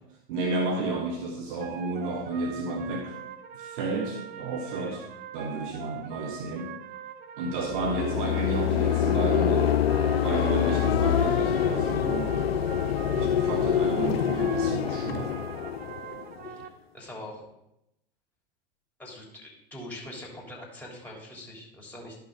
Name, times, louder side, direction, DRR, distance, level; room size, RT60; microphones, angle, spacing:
voice 1, 0.3-3.2 3.5-5.0 5.3-6.8 7.4-9.7 10.2-12.3 13.1-15.3, right 3 dB, 60° right, 3 dB, 1.3 m, -32 dB
sound 1, 1.6-16.7, right 10 dB, 30° right, 0.6 m, -42 dB
sound 2, 7.6-16.6, left 9 dB, 85° left, 0.5 m, -25 dB
voice 2, 16.4-17.5 19.0-22.2, left 1 dB, 5° left, -3 dB, 3.0 m, -43 dB
12.0 x 5.7 x 3.7 m, 0.84 s
figure-of-eight pair, 85°, 30 cm